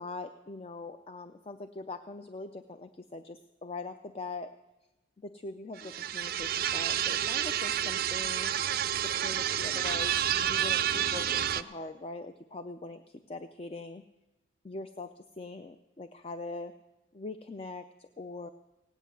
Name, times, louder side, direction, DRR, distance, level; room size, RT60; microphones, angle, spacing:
voice 1, 0.0-4.5 5.2-8.5 9.0-10.2 10.4-14.0 14.6-16.7 17.1-18.5, left 3 dB, 30° left, 9 dB, 0.4 m, -42 dB
sound 1, 5.8-11.6, right 10 dB, 50° right, 0.4 m, -29 dB
17.0 x 9.4 x 6.9 m, 1.0 s
head